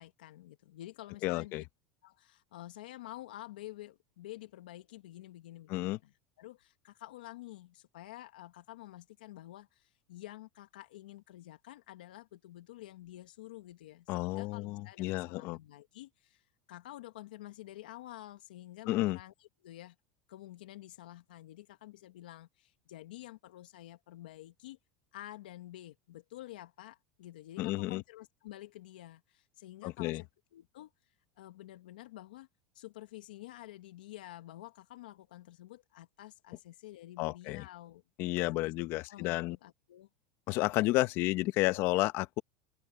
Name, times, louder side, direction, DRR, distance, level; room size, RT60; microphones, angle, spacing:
voice 1, 0.0-1.6 2.0-6.1 6.4-19.9 20.3-24.8 25.1-30.3 30.5-32.5 32.7-38.0 38.4-38.7 39.1-40.1, left 15 dB, 85° left, 1.3 m, -49 dB
voice 2, 1.2-1.6 5.7-6.0 14.1-15.6 18.9-19.2 27.6-28.0 29.8-30.2 37.2-37.6 38.2-39.6 40.5-42.4, left 19 dB, 55° left, 1.1 m, -31 dB
supercardioid pair, 110°, 5 cm